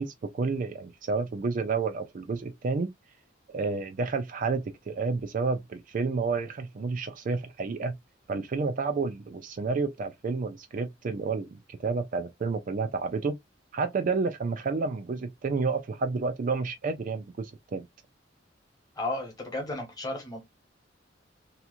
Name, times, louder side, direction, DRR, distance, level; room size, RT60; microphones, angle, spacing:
voice 1, 0.0-2.9 3.5-8.0 8.3-13.4 13.7-17.9, right 4 dB, 45° right, 0.4 m, -30 dB
voice 2, 19.0-20.4, left 2 dB, 20° left, 1.3 m, -33 dB
2.9 x 2.3 x 2.4 m
head